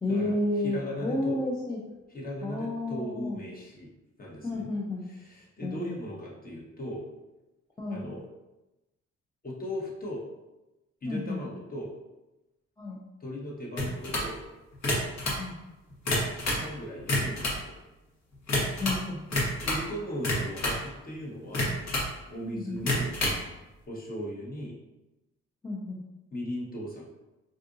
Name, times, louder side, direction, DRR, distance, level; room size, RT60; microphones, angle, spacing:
voice 1, 0.0-1.8 2.4-3.4 4.4-5.1 5.6-6.0 7.8-8.1 11.1-11.4 12.8-13.0 15.2-15.6 18.8-19.2 22.4-22.9 25.6-26.0, left 2 dB, 10° left, -5 dB, 0.5 m, -31 dB
voice 2, 0.6-1.4 2.1-3.9 4.2-4.7 5.1-7.0 7.9-8.3 9.4-10.2 11.0-11.9 13.2-14.4 16.2-17.7 19.6-21.7 22.3-23.2 23.9-24.8 26.3-27.1, equal, 30° left, -4 dB, 1.0 m, -37 dB
sound 1, 13.8-14.3 14.7-15.4 15.9-16.7 17.0-17.6 18.5-19.0 19.3-19.9 20.2-20.8 21.5-22.1 22.8-23.4, left 1 dB, 60° left, 1.1 m, -28 dB
3.7 x 2.5 x 2.5 m, 1.0 s
cardioid pair, 90°, 30 cm